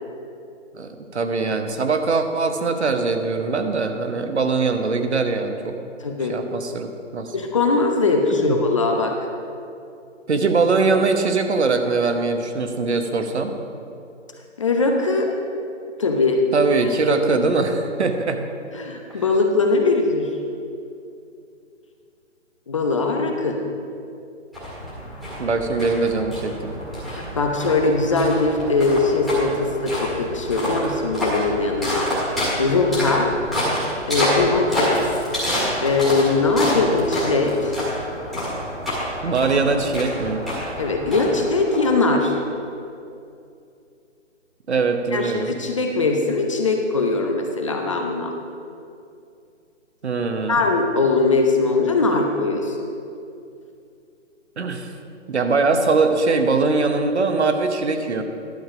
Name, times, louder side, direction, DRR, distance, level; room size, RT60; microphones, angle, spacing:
voice 1, 0.7-5.8 6.3-7.3 8.4-8.6 10.3-13.6 16.5-18.4 19.1-19.2 25.4-26.7 39.2-40.4 44.7-45.6 50.0-50.6 54.6-54.9 55.3-58.2, right 4 dB, 60° right, 6 dB, 1.1 m, -22 dB
voice 2, 6.0-6.4 7.3-9.1 14.6-15.3 16.0-16.4 17.1-17.2 18.7-20.3 22.7-23.6 27.1-32.1 32.6-33.4 34.1-35.1 35.8-37.8 40.8-42.4 45.1-48.3 50.5-52.8, left 3 dB, 25° left, 2 dB, 0.6 m, -21 dB
sound 1, 24.5-42.3, equal, ahead, 1.7 m, -28 dB
11.5 x 7.1 x 4.9 m, 2.5 s
figure-of-eight pair, 145°, 37 cm